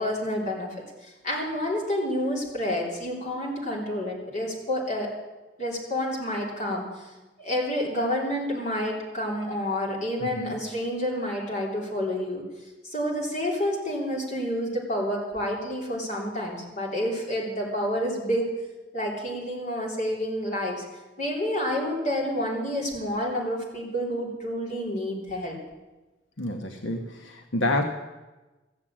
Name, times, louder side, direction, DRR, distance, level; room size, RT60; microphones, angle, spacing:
voice 1, 0.0-5.1 5.6-6.9 7.4-12.4 12.9-18.5 18.9-20.9 21.2-25.6, equal, 40° left, -2 dB, 3.5 m, -29 dB
voice 2, 10.2-10.6 26.4-27.8, left 1 dB, 85° left, 3 dB, 1.1 m, -28 dB
14.5 x 7.5 x 8.7 m, 1.1 s
head